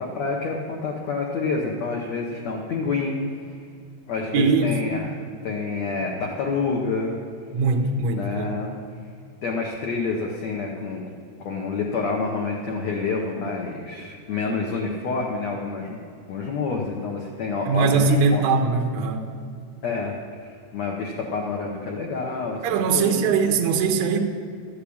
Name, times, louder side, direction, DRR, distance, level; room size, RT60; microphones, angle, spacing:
voice 1, 0.0-3.4 4.1-5.2 5.4-7.2 8.1-8.7 9.4-11.0 11.4-16.0 16.3-18.4 19.8-20.2 20.4-22.6 22.9-23.3, left 4 dB, 75° left, 0 dB, 1.6 m, -28 dB
voice 2, 4.3-4.8 7.5-8.5 17.4-19.3 22.6-24.2, right 4 dB, 85° right, 3 dB, 1.5 m, -21 dB
13.0 x 6.7 x 8.6 m, 2.5 s
omnidirectional pair, 4.7 m